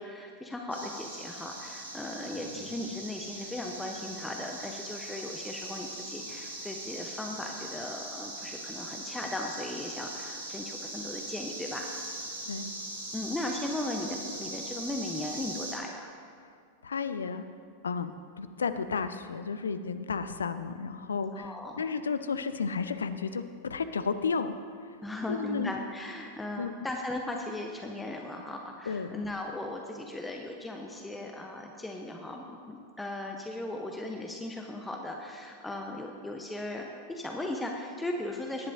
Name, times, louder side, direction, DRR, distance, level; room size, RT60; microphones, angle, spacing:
voice 1, 0.0-11.9 13.1-16.1 21.3-21.8 25.0-38.7, left 1 dB, 10° left, 2 dB, 0.8 m, -37 dB
sound 1, 0.7-15.8, right 1 dB, 70° right, 3.2 m, -41 dB
voice 2, 16.8-17.5 17.8-18.1 18.4-24.6 25.3-25.7 26.6-26.7 28.9-29.2, left 5 dB, 70° left, 11 dB, 0.5 m, -32 dB
18.0 x 10.5 x 2.6 m, 2.3 s
figure-of-eight pair, 90°, 0 cm